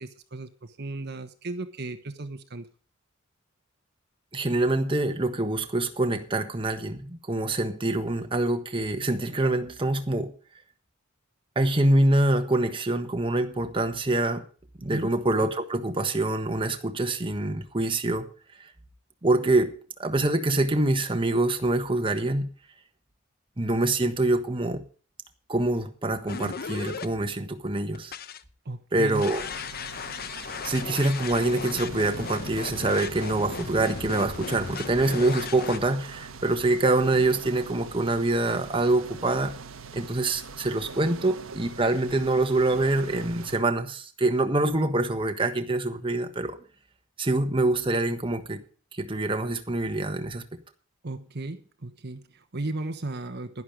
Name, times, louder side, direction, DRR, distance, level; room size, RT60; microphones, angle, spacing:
voice 1, 0.0-2.7 14.9-15.1 28.6-29.2 51.0-53.6, right 2 dB, 50° right, 1.1 m, -35 dB
voice 2, 4.3-10.3 11.5-14.4 14.8-18.3 19.2-19.7 20.0-22.5 23.6-24.8 25.5-28.1 28.9-29.4 30.6-39.5 39.9-46.6 47.2-48.6 48.9-50.4, right 2 dB, 25° right, 1.3 m, -25 dB
sound 1, 26.3-27.1 28.0-28.4 29.2-35.8, left 5 dB, 45° left, 0.8 m, -36 dB
sound 2, 29.1-43.6, right 4 dB, 75° right, 1.2 m, -43 dB
11.0 x 11.0 x 5.0 m
head